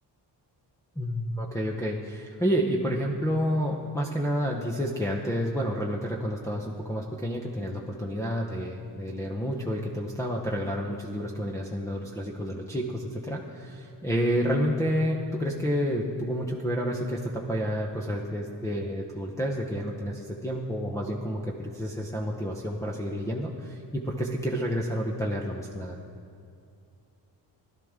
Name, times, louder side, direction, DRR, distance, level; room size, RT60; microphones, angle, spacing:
voice 1, 1.0-26.0, equal, 5° left, -4 dB, 0.8 m, -29 dB
16.5 x 12.0 x 3.7 m, 2.4 s
cardioid pair, 120°, 44 cm